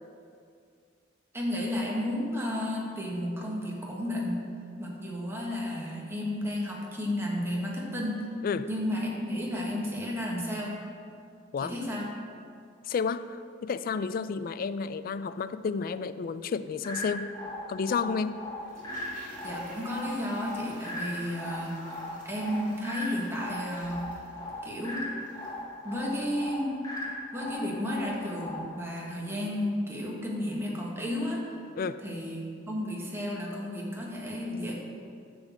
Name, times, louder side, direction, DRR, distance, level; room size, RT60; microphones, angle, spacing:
voice 1, 1.3-4.5 4.8-8.2 8.7-10.8 11.6-12.1 19.4-21.7 22.2-24.1 24.6-25.1 25.8-26.9 27.3-31.4 32.0-34.7, left 1 dB, 15° right, -3 dB, 1.3 m, -32 dB
voice 2, 12.9-17.3 17.7-18.4 31.8-32.0, left 5 dB, 50° left, 14 dB, 0.3 m, -31 dB
sound 1, 16.8-28.8, left 1 dB, 20° left, 1.0 m, -39 dB
Toilet flush, 18.6-25.7 25.9-26.0, right 1 dB, 45° right, 2.3 m, -50 dB
9.9 x 3.9 x 7.2 m, 2.3 s
head